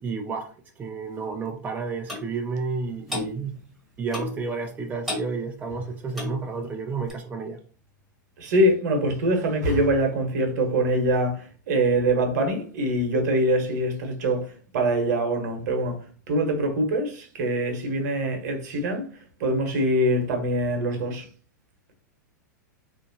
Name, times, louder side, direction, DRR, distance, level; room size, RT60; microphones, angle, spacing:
voice 1, 0.0-3.6 4.0-7.6, right 4 dB, 15° right, 0.4 m, -31 dB
Clock, 2.1-2.3 3.1-3.3 4.1-4.4 5.1-5.3 6.1-6.4 7.1-7.2, left 2 dB, ahead, 1.1 m, -31 dB
voice 2, 8.4-16.0 16.3-19.1 19.4-21.3, right 1 dB, 60° right, 1.0 m, -24 dB
3.4 x 2.6 x 2.6 m
hypercardioid pair, 100°, 10 cm